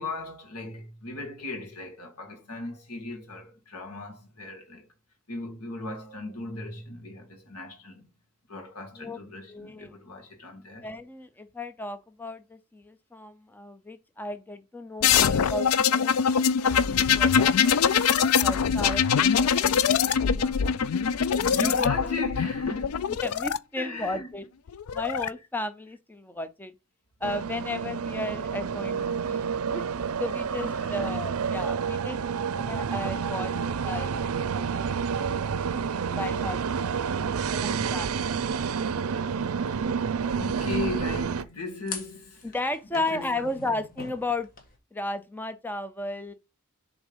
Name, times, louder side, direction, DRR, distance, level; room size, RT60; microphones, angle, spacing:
voice 1, 0.0-4.9 5.3-8.1 8.5-10.9 21.2-23.1 23.8-24.3 30.5-31.2 40.3-42.6 42.9-43.8, left 2 dB, 85° left, 2.0 m, -37 dB
voice 2, 9.5-9.9 10.8-16.2 16.6-17.8 18.4-20.6 23.2-24.4 24.9-26.7 27.2-29.8 30.2-32.2 32.7-33.5 33.8-34.8 35.1-35.3 36.0-37.1 37.5-38.4 42.4-44.5 44.9-46.3, left 2 dB, 10° left, 0.5 m, -35 dB
sound 1, 15.0-23.6 24.7-25.3, left 7 dB, 65° left, 0.4 m, -23 dB
sound 2, 27.2-41.4, right 6 dB, 70° right, 0.5 m, -29 dB
sound 3, 39.2-44.8, left 4 dB, 40° left, 1.5 m, -46 dB
7.1 x 3.6 x 5.2 m
head